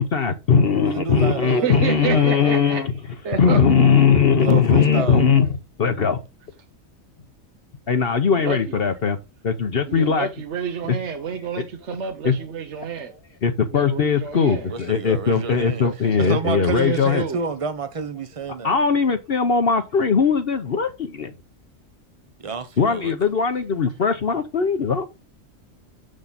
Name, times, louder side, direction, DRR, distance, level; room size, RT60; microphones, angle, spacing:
voice 1, 0.0-2.9 3.4-5.5 5.8-6.2 7.9-9.2 9.4-10.3 12.2-12.3 13.4-17.2 18.6-21.3 22.8-25.0, left 6 dB, 50° left, 1.0 m, -19 dB
voice 2, 0.8-2.8 4.4-5.2 14.6-15.9 16.2-18.7 22.4-23.1, right 4 dB, 30° right, 0.8 m, -30 dB
voice 3, 1.4-2.8 3.2-4.0 5.0-5.1 8.4-8.8 9.9-13.1 13.7-14.7 15.8-17.4, right 6 dB, 60° right, 1.2 m, -30 dB
7.4 x 6.4 x 4.0 m
omnidirectional pair, 1.4 m